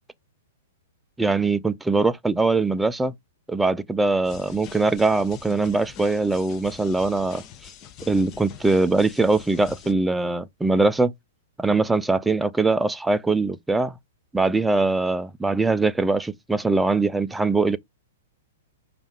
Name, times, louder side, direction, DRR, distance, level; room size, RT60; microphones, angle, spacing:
voice 1, 1.2-3.1 3.5-7.4 8.1-11.1 11.6-13.9 14.3-17.8, right 3 dB, 5° right, 0.4 m, -22 dB
sound 1, 4.2-9.9, left 9 dB, 35° left, 0.7 m, -44 dB
5.2 x 2.4 x 3.6 m
hypercardioid pair, 120°, 0 cm